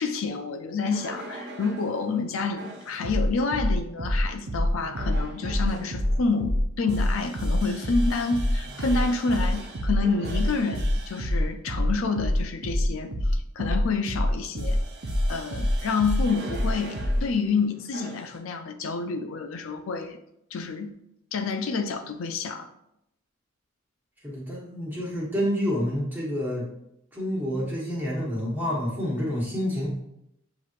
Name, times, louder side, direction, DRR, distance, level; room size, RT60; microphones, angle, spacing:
voice 1, 0.0-14.8 15.3-20.2 20.5-20.9 21.3-22.7, left 4 dB, 70° left, 7 dB, 0.4 m, -28 dB
sound 1, 0.9-1.9 2.6-17.2 17.9-18.3, equal, 55° right, 0.6 m, -27 dB
voice 2, 24.2-26.7 27.1-29.9, equal, 10° right, -5 dB, 1.2 m, -28 dB
7.1 x 3.0 x 2.5 m, 0.81 s
head